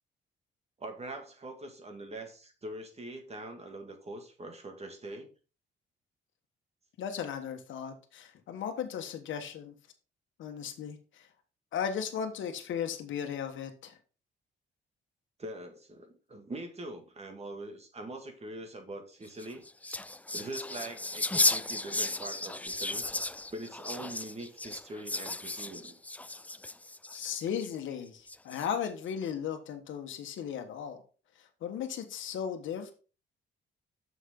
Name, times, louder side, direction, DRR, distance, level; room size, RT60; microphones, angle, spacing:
voice 1, 0.8-5.3 15.4-19.6 19.9-20.0 20.3-23.0 23.5-26.0, right 1 dB, 30° right, 4 dB, 2.1 m, -43 dB
voice 2, 7.0-9.7 10.4-11.0 11.7-13.9 27.1-31.0 31.6-32.9, left 8 dB, 75° left, 5 dB, 1.4 m, -36 dB
sound 1, 19.3-27.7 28.3-28.9, left 2 dB, 5° left, 0.4 m, -34 dB
6.7 x 6.3 x 3.8 m, 0.35 s
cardioid pair, 90°, 20 cm